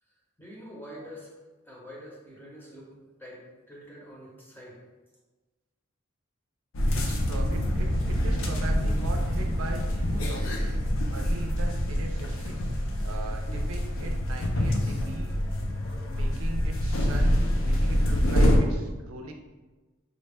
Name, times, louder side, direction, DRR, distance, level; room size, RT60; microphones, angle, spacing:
voice 1, 0.4-1.3 1.7-2.9 3.2-4.8, equal, 10° left, -3 dB, 0.7 m, -45 dB
sound 1, 6.7-18.6, equal, 70° left, 0.5 m, -26 dB
voice 2, 6.9-10.7 11.1-15.3 16.1-19.3, right 2 dB, 75° right, 3 dB, 0.5 m, -40 dB
4.9 x 2.1 x 3.3 m, 1.2 s
head